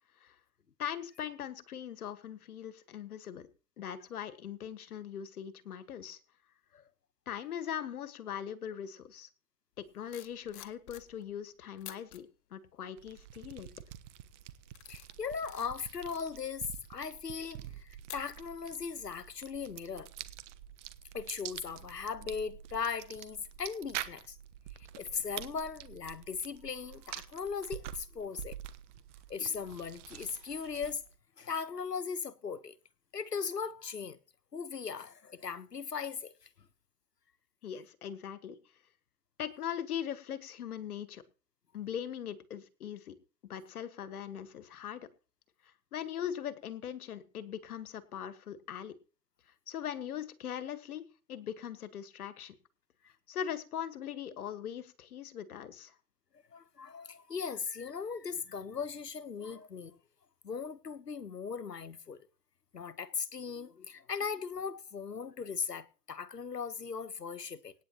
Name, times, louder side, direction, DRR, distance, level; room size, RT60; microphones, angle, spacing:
voice 1, 0.8-3.5 3.8-6.2 7.3-9.3 9.8-13.7 37.6-38.6 39.4-41.2 41.7-43.2 43.5-45.1 45.6-48.9 49.7-51.0 51.3-52.5 53.3-55.9, left 9 dB, 65° left, 1.6 m, -40 dB
sound 1, 9.9-11.4 11.8-12.2 12.8-13.2 13.7-14.0 14.5-18.8 19.1-19.3, left 13 dB, 45° left, 1.5 m, -52 dB
sound 2, 13.0-31.2, right 12 dB, 50° right, 1.2 m, -47 dB
voice 2, 14.8-20.1 21.1-24.4 24.9-28.6 29.3-31.0 31.4-32.7 33.1-34.2 34.5-36.3 56.5-60.0 60.4-62.3 62.7-67.7, left 6 dB, 90° left, 1.1 m, -38 dB
25.5 x 9.5 x 2.9 m
figure-of-eight pair, 105°, 47 cm